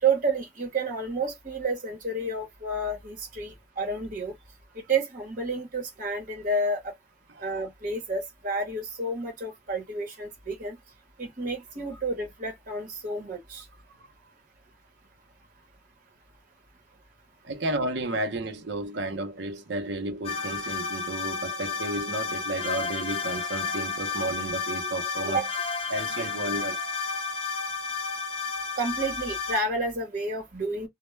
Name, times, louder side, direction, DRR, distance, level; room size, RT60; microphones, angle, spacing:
voice 1, 0.0-4.3 4.7-6.9 7.4-10.8 11.2-13.6 25.3-25.5 28.8-30.9, right 3 dB, 50° right, 1.0 m, -30 dB
voice 2, 17.4-25.4 25.9-26.8, right 2 dB, 75° right, 0.6 m, -32 dB
sound 1, 20.2-29.6, left 4 dB, 35° left, 0.7 m, -32 dB
2.2 x 2.1 x 3.0 m
head